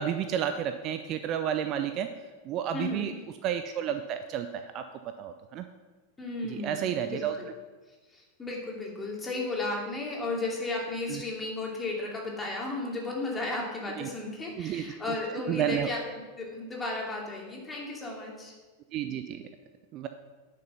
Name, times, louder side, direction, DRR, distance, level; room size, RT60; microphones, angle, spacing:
voice 1, 0.0-2.1 2.4-3.1 3.4-4.8 5.2-5.6 6.5-7.4 11.1-11.2 14.0-14.1 14.6-14.9 15.5-15.9 18.9-19.4 19.9-20.1, right 9 dB, 35° right, 9 dB, 0.5 m, -31 dB
voice 2, 2.7-3.1 6.2-7.5 8.1-16.0 16.4-18.5, left 2 dB, 15° left, -2 dB, 2.8 m, -34 dB
10.0 x 6.9 x 5.8 m, 1.3 s
figure-of-eight pair, 90°, 0 cm